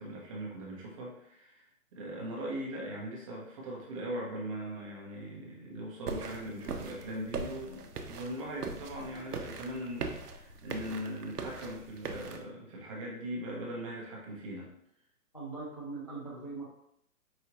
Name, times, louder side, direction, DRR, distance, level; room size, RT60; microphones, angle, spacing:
voice 1, 0.0-14.7, right 1 dB, 20° right, -3 dB, 0.7 m, -40 dB
sound 1, 6.1-12.4, right 4 dB, 90° right, 0.7 m, -41 dB
voice 2, 15.3-16.7, right 3 dB, 25° left, -5 dB, 0.3 m, -41 dB
4.8 x 2.6 x 2.9 m, 0.76 s
hypercardioid pair, 140°, 45 cm